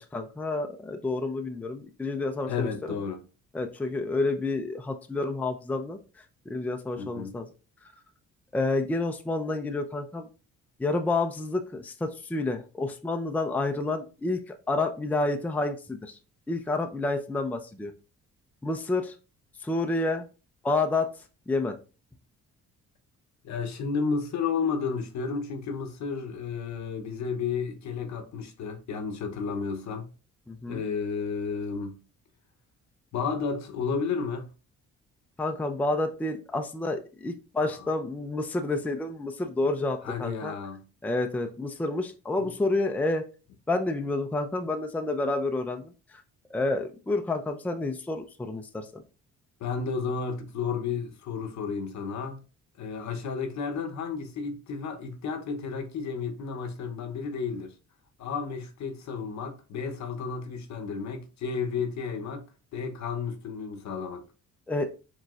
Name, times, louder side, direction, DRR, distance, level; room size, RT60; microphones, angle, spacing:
voice 1, 0.0-3.0 3.5-6.0 6.5-7.5 8.5-10.3 10.8-16.1 16.5-17.9 18.6-19.1 19.6-20.2 20.6-21.1 21.5-21.8 30.5-30.8 35.4-40.5 41.0-43.3 43.7-45.9 46.5-49.0 64.7-64.9, left 2 dB, 5° left, 0.4 m, -29 dB
voice 2, 2.5-3.2 7.0-7.4 23.4-30.1 30.7-32.0 33.1-34.5 37.6-37.8 40.0-40.8 42.4-42.5 49.6-52.4 52.8-57.7 58.2-62.5 62.7-64.2, left 5 dB, 65° left, 0.8 m, -32 dB
4.8 x 3.1 x 2.4 m
cardioid pair, 90°, 30 cm